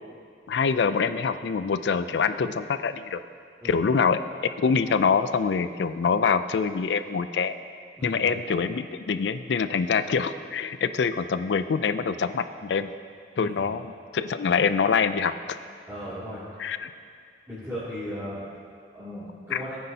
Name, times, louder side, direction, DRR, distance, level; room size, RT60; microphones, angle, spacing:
voice 1, 0.5-3.2 3.6-4.2 4.6-7.5 8.0-12.9 13.4-13.8 14.1-15.3 16.6-16.9 19.5-19.6, left 5 dB, 80° left, 12 dB, 0.4 m, -25 dB
voice 2, 8.0-8.3 13.4-13.7 15.9-16.4 17.5-19.8, equal, 15° right, -14 dB, 2.6 m, -37 dB
17.5 x 9.3 x 2.8 m, 2.2 s
head